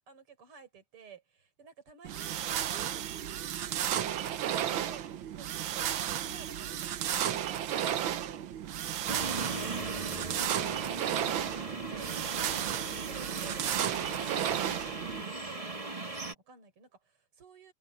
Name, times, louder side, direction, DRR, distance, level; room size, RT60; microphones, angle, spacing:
voice 1, 0.0-3.6 4.2-5.9 6.2-8.5 11.0-17.7, right 6 dB, 45° right, 5.8 m, -54 dB
sound 1, 2.0-15.2, right 10 dB, 80° right, 1.1 m, -33 dB
sound 2, 9.1-16.3, right 3 dB, 15° right, 1.2 m, -38 dB
omnidirectional pair, 3.5 m